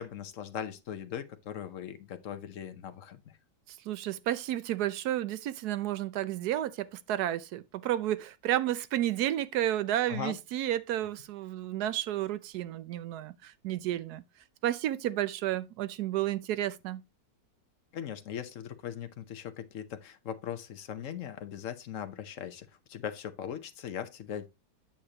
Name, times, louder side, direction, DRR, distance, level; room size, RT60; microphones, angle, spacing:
voice 1, 0.0-3.4 10.1-10.4 17.9-24.5, left 9 dB, 55° left, 1.0 m, -39 dB
voice 2, 3.7-14.2 14.6-17.0, right 13 dB, 70° right, 1.1 m, -31 dB
8.7 x 6.6 x 2.9 m
omnidirectional pair, 1.9 m